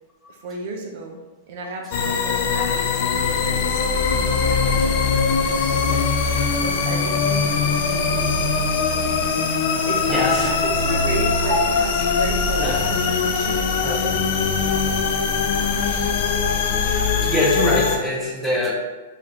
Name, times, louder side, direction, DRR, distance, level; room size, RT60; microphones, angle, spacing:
voice 1, 0.3-1.2 1.5-6.0 6.6-8.5 9.9-15.0, right 3 dB, 55° right, 2 dB, 0.6 m, -34 dB
sound 1, 1.9-18.0, left 5 dB, 50° left, 0.5 m, -21 dB
sound 2, 5.4-17.9, left 2 dB, 90° left, 0.9 m, -40 dB
voice 2, 10.1-10.5 11.5-11.6 12.6-12.9 13.8-14.1 15.7-15.9 17.2-18.7, left 1 dB, 5° left, -4 dB, 0.8 m, -23 dB
4.8 x 2.5 x 2.8 m, 1.2 s
hypercardioid pair, 135°, 0 cm